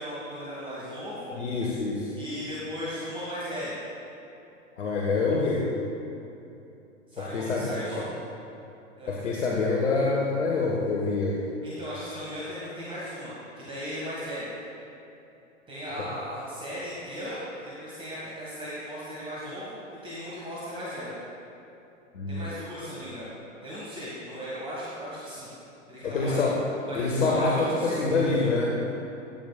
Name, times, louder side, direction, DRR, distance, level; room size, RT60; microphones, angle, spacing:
voice 1, 0.0-1.3 2.1-3.8 7.1-8.1 9.0-9.1 11.6-14.5 15.7-21.1 22.3-23.3 23.6-25.5 25.9-26.4 26.9-28.3, equal, 15° right, -8 dB, 1.7 m, -37 dB
voice 2, 1.4-2.1 4.8-5.7 7.2-7.7 8.0-8.1 9.1-11.4 16.0-16.1 22.1-22.5 26.0-26.6 26.9-28.8, left 3 dB, 65° left, -3 dB, 1.2 m, -26 dB
12.5 x 9.0 x 2.3 m, 2.9 s
figure-of-eight pair, 105°, 39 cm